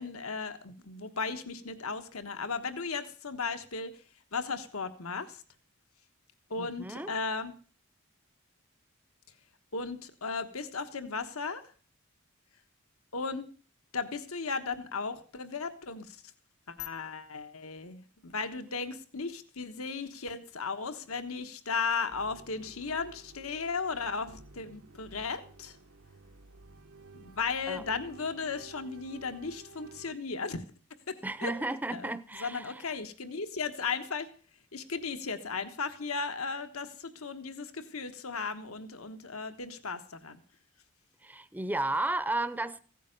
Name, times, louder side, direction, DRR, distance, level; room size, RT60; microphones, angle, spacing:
voice 1, 0.0-4.0 4.3-5.4 6.5-7.5 9.7-11.6 13.1-13.4 13.9-16.2 16.7-25.8 27.1-30.6 31.1-31.5 31.9-34.3 34.7-40.4, left 4 dB, 80° left, 1.3 m, -36 dB
voice 2, 6.6-7.1 27.7-27.8 31.2-32.8 41.2-42.8, right 2 dB, 10° right, 0.6 m, -33 dB
sound 1, 22.1-30.1, right 3 dB, 80° right, 1.2 m, -53 dB
16.0 x 9.2 x 6.6 m
head